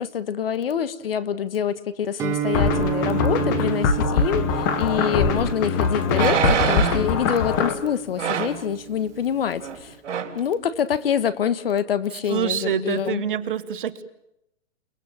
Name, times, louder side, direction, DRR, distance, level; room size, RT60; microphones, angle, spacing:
voice 1, 0.0-10.0 10.3-13.2, left 8 dB, 50° left, 1.3 m, -26 dB
Guitar, 2.2-9.9, right 9 dB, 10° right, 1.5 m, -31 dB
sound 1, 2.5-7.7, left 5 dB, 15° left, 1.0 m, -23 dB
sound 2, 5.1-5.2 6.1-7.1 8.2-8.6 9.6-9.8 10.0-10.4 10.9-11.0, right 7 dB, 70° right, 3.4 m, -24 dB
voice 2, 12.3-14.0, right 8 dB, 45° right, 1.4 m, -26 dB
29.5 x 20.0 x 7.3 m
hypercardioid pair, 170°, 37 cm